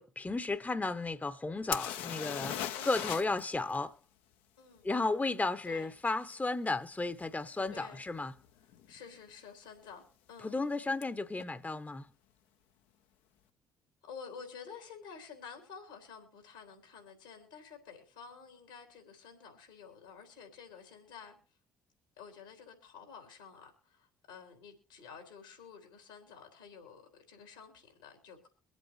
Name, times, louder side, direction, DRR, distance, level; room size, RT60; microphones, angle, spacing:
voice 1, 0.0-4.0 4.8-8.3 10.4-12.1, left 3 dB, 15° left, 0.8 m, -34 dB
sound 1, 1.7-3.4 3.7-3.8 7.2-7.3 7.9-8.1 8.4-9.0 11.0-11.1 11.4-11.5, left 10 dB, 70° left, 0.7 m, -38 dB
voice 2, 2.7-3.1 4.6-4.8 5.6-5.9 7.7-8.0 8.9-10.6 14.0-21.4 22.2-27.0 27.3-28.5, left 6 dB, 90° left, 3.6 m, -51 dB
24.0 x 8.2 x 3.1 m
hypercardioid pair, 50°, 10 cm